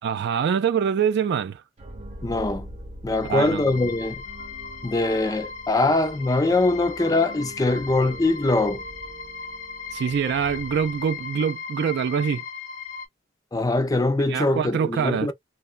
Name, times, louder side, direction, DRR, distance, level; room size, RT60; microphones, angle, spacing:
voice 1, 0.0-1.6 3.2-3.6 9.9-12.4 14.3-15.3, right 7 dB, 55° right, 0.3 m, -24 dB
sound 1, 1.8-11.4, right 1 dB, 35° right, 0.7 m, -44 dB
voice 2, 2.2-2.7 3.0-4.2 4.8-8.8 13.5-15.3, left 2 dB, 20° left, 0.4 m, -22 dB
sound 2, 3.1-13.1, left 6 dB, 75° left, 0.7 m, -38 dB
2.9 x 2.2 x 2.4 m
head